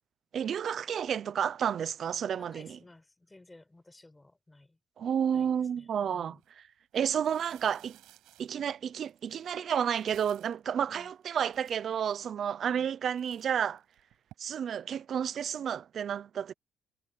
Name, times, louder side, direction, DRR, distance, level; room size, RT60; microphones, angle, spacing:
voice 1, 0.3-2.8 5.0-6.4 6.9-8.0 8.4-13.8 14.4-16.5, right 8 dB, 40° right, 0.6 m, -31 dB
voice 2, 2.4-4.8 5.3-5.5 5.8-6.4 10.9-11.1 12.6-12.9, left 2 dB, 10° left, 6.0 m, -56 dB
sound 1, 6.3-6.5 6.9-10.7 11.2-11.3 11.5-12.2 12.7-12.9 13.2-14.3, right 16 dB, 80° right, 7.3 m, -58 dB
cardioid pair, 175°, 0 cm